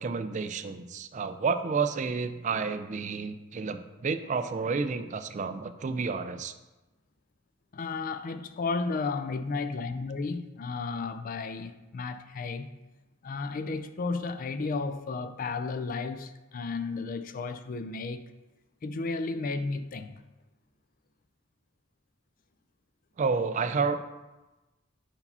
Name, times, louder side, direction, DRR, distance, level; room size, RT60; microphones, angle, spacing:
voice 1, 0.0-6.5 23.2-24.0, right 5 dB, 35° right, 0.3 m, -30 dB
voice 2, 7.7-12.8 13.2-18.2 18.8-20.2, left 4 dB, 45° left, 0.4 m, -33 dB
5.3 x 4.8 x 5.5 m
head